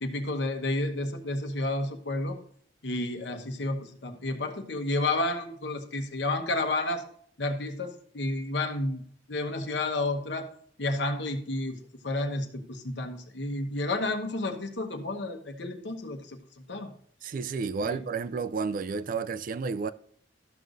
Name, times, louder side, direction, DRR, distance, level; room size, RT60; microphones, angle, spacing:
voice 1, 0.0-2.4 2.8-7.0 7.4-9.0 9.3-10.5 10.8-16.4 16.7-16.9 17.8-18.0, left 2 dB, 70° left, 1.1 m, -31 dB
voice 2, 17.2-19.9, right 5 dB, 50° right, 0.4 m, -31 dB
13.0 x 6.4 x 2.6 m
head